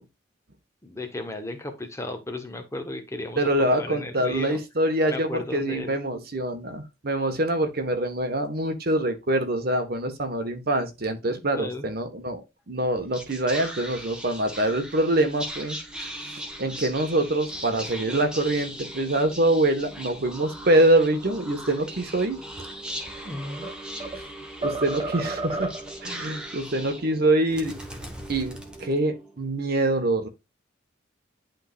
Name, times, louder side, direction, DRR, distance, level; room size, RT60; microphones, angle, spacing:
voice 1, 0.8-4.6 5.1-6.0 11.2-11.8 23.2-23.7, left 1 dB, 15° left, 1.2 m, -35 dB
voice 2, 3.4-22.4 24.1-24.2 24.6-25.7 26.0-27.7 28.3-30.3, right 1 dB, 50° right, 1.3 m, -25 dB
Whispering, 12.8-29.4, equal, 5° right, 1.3 m, -39 dB
sound 1, 22.9-24.3 24.6-26.0, right 2 dB, 25° right, 1.5 m, -32 dB
11.0 x 3.8 x 2.4 m
head